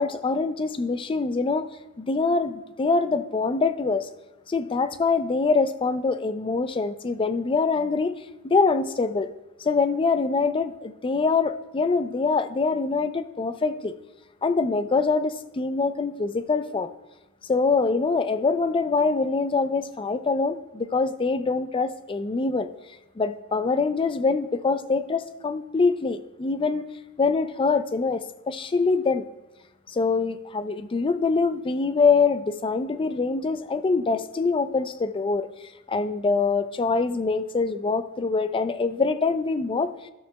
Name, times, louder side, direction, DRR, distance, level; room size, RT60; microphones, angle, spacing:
voice 1, 0.0-1.7 2.0-4.1 4.5-8.1 8.4-9.3 9.6-13.9 14.4-16.9 17.5-22.7 23.2-26.9 27.2-29.3 29.9-35.5 35.9-39.9, left 4 dB, 25° left, 11 dB, 0.3 m, -24 dB
13.0 x 7.1 x 2.2 m, 1.1 s
head